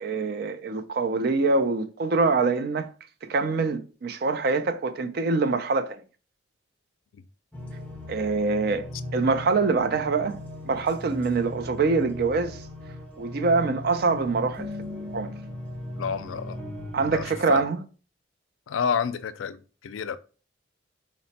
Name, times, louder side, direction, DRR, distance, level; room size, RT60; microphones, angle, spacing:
voice 1, 0.0-2.9 3.2-6.0 8.1-8.9 9.1-12.6 13.2-15.3 16.9-17.8, right 4 dB, 55° right, 0.4 m, -25 dB
sound 1, 7.5-17.4, left 1 dB, 5° left, 0.6 m, -38 dB
voice 2, 16.0-16.6 17.1-17.6 18.7-20.2, left 6 dB, 85° left, 0.4 m, -30 dB
4.2 x 2.1 x 4.0 m
head